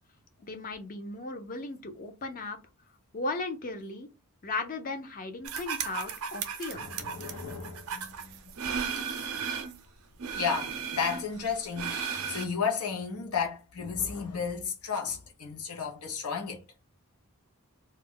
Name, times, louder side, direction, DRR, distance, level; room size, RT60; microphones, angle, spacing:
voice 1, 0.4-2.6 3.1-4.1 4.4-6.8, left 3 dB, 40° left, 0.5 m, -36 dB
sound 1, 5.4-9.8 10.2-12.4, right 7 dB, 75° right, 0.5 m, -35 dB
voice 2, 6.7-8.7 9.3-9.4 10.3-16.6, left 6 dB, 85° left, 0.8 m, -33 dB
2.3 x 2.1 x 3.7 m
head